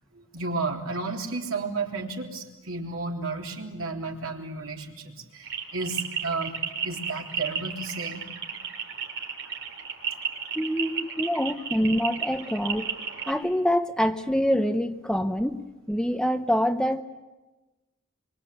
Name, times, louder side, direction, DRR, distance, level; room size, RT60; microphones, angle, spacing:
voice 1, 0.3-6.6 6.8-8.2, right 3 dB, 80° right, 1 dB, 3.5 m, -32 dB
sound 1, 5.4-13.3, right 6 dB, 60° right, 4.5 m, -33 dB
voice 2, 10.6-13.0 13.3-17.0, equal, 5° left, 8 dB, 0.8 m, -25 dB
25.5 x 24.5 x 8.3 m, 1.1 s
head